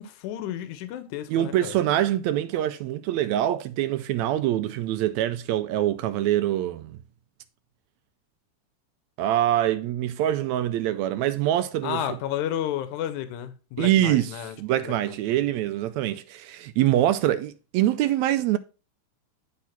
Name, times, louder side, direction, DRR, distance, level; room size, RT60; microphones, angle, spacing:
voice 1, 0.0-1.8 11.8-14.6 14.8-15.5, left 11 dB, 85° left, 2.2 m, -32 dB
voice 2, 1.3-7.0 9.2-12.0 13.8-18.6, right 13 dB, 80° right, 1.8 m, -24 dB
10.5 x 3.7 x 5.7 m
omnidirectional pair, 3.4 m